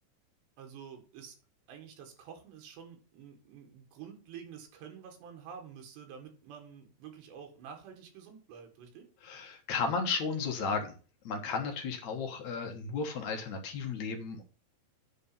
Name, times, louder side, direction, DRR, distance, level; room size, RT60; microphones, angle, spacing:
voice 1, 0.6-1.4 1.7-9.1, right 7 dB, 90° right, 3 dB, 4.1 m, -49 dB
voice 2, 9.2-11.0 11.2-14.4, left 5 dB, 60° left, 3 dB, 1.9 m, -34 dB
9.1 x 4.2 x 6.8 m, 0.36 s
omnidirectional pair, 4.8 m